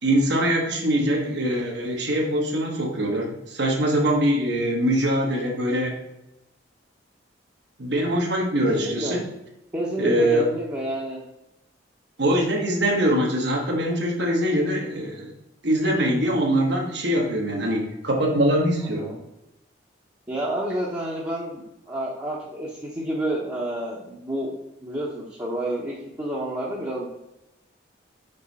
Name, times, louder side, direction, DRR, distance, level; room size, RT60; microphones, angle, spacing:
voice 1, 0.0-6.0 7.8-9.2 10.0-10.5 12.2-15.3 15.6-19.1, right 1 dB, 65° right, 1 dB, 1.3 m, -23 dB
voice 2, 8.6-9.2 9.7-11.2 18.8-19.2 20.3-24.5 24.8-27.1, right 1 dB, 20° right, -6 dB, 0.9 m, -29 dB
5.4 x 5.2 x 4.1 m, 0.88 s
head